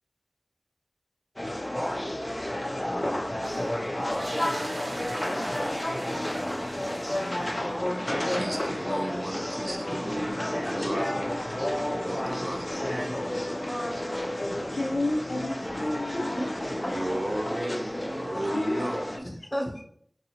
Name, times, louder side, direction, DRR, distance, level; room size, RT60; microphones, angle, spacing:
sound 1, 1.4-19.2, left 1 dB, 30° left, 0.4 m, -31 dB
sound 2, 3.3-7.9, right 1 dB, 90° right, 0.7 m, -41 dB
voice 1, 7.0-7.6 8.2-11.3 11.6-11.7 12.0-13.2 13.9-14.0 16.7-19.0, right 1 dB, 40° right, 2 dB, 0.5 m, -35 dB
voice 2, 13.3-14.2 15.8-17.2 19.2-19.8, equal, 10° left, 0 dB, 0.9 m, -35 dB
voice 3, 14.4-16.5 18.5-19.0 19.8-19.9, left 1 dB, 85° left, 0 dB, 0.6 m, -31 dB
3.8 x 2.7 x 2.8 m, 0.64 s
wide cardioid pair, 55°, 0 cm